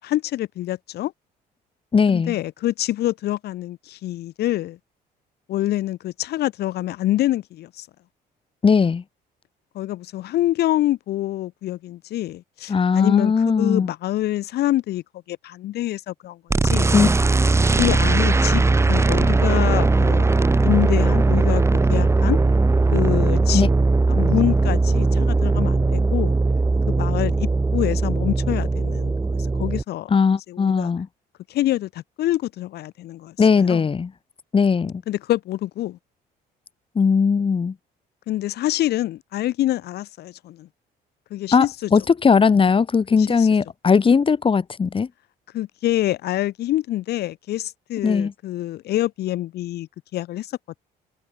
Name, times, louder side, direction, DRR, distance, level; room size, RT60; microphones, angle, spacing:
voice 1, 0.0-1.1 2.1-4.8 5.5-7.9 9.7-16.9 17.8-21.6 21.9-22.4 22.9-23.7 24.1-26.4 26.9-29.2 29.6-30.1 30.5-30.9 31.5-33.8 35.1-36.0 38.3-40.7 41.3-41.9 43.2-43.5 45.5-50.8, left 14 dB, 75° left, 7.7 m, -26 dB
voice 2, 1.9-2.4 8.6-9.0 12.7-13.9 16.9-17.1 23.5-23.7 30.1-31.1 33.4-34.1 34.5-34.9 37.0-37.7 41.5-41.7 41.9-45.1 48.0-48.3, left 5 dB, 30° left, 7.5 m, -18 dB
sound 1, 16.5-29.8, right 3 dB, 15° right, 1.3 m, -19 dB
cardioid pair, 110°, 17 cm